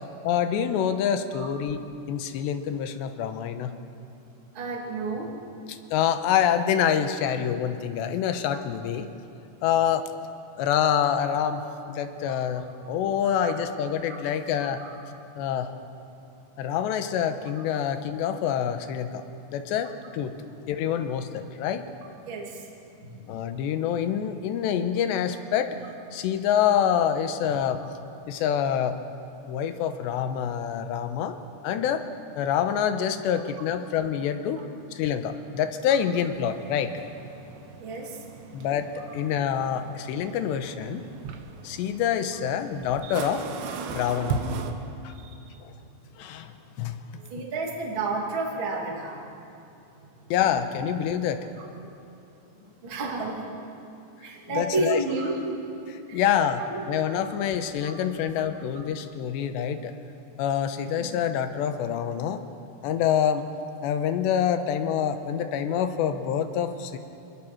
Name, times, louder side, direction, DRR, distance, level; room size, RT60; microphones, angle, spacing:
voice 1, 0.2-1.8 2.1-3.8 5.7-9.1 9.6-10.1 10.6-14.9 15.4-15.7 16.6-19.2 19.5-20.4 20.7-21.9 23.1-25.8 26.1-27.8 28.3-29.0 29.5-31.4 31.6-32.1 32.4-34.6 34.9-37.0 38.5-41.0 41.6-43.6 43.9-44.4 45.0-45.1 45.6-45.7 46.2-47.1 50.3-51.5 54.5-55.0 55.9-59.9 60.4-62.4 62.8-63.4 63.8-67.0, left 9 dB, 85° left, 9 dB, 3.2 m, -26 dB
voice 2, 4.5-5.3 13.3-13.6 14.6-14.9 22.3-22.7 37.6-38.2 43.0-43.1 45.2-45.6 47.3-49.2 50.0-50.1 52.8-53.7 54.2-55.5 55.9-56.2 56.7-56.8 57.8-57.9, right 3 dB, 35° right, -2 dB, 2.8 m, -31 dB
sound 1, 36.2-44.7, right 5 dB, 85° right, 3.5 m, -38 dB
26.5 x 20.5 x 6.1 m, 2.7 s
omnidirectional pair, 5.0 m